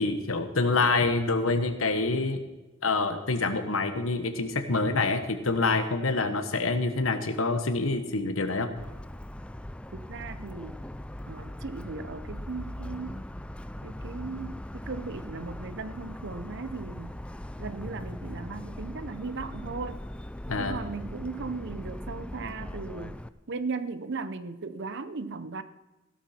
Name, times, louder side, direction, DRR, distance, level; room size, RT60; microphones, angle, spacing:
voice 1, 0.0-2.4 2.8-8.7 20.5-20.8, left 3 dB, 85° left, 1.3 m, -26 dB
Motor vehicle (road) / Siren, 8.8-23.3, left 1 dB, 5° left, 0.4 m, -40 dB
voice 2, 9.9-10.8 11.3-13.2 13.8-17.2 17.6-20.1 20.6-23.2 23.5-25.6, right 4 dB, 60° right, 0.8 m, -37 dB
16.0 x 13.0 x 4.4 m
head